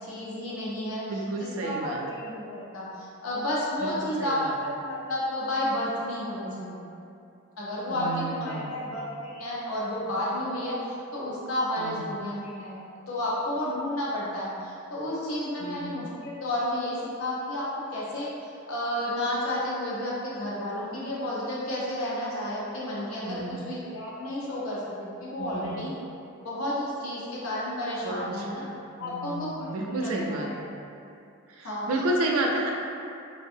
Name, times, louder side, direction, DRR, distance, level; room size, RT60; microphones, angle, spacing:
voice 1, 0.0-1.0 1.4-6.9 7.6-12.8 13.1-18.3 18.7-25.9 26.4-28.7 29.0-30.8 31.6-31.9 32.2-32.4, left 1 dB, 85° left, -7 dB, 0.7 m, -31 dB
voice 2, 1.1-2.0 3.8-4.5 7.9-8.9 11.8-12.0 15.6-15.9 23.2-23.6 25.4-25.8 28.0-28.5 29.0-30.7 31.5-32.7, right 2 dB, 80° right, -1 dB, 0.4 m, -31 dB
2.7 x 2.2 x 2.5 m, 2.6 s
head